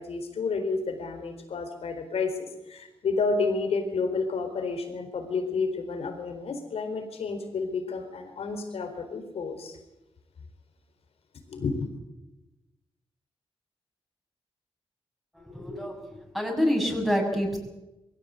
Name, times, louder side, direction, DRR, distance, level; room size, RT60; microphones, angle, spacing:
voice 1, 0.0-9.8 11.5-11.8, left 4 dB, 80° left, 6 dB, 4.2 m, -30 dB
voice 2, 15.3-17.6, equal, ahead, 1 dB, 6.6 m, -27 dB
22.5 x 17.0 x 8.1 m, 1.0 s
cardioid pair, 95°, 10 cm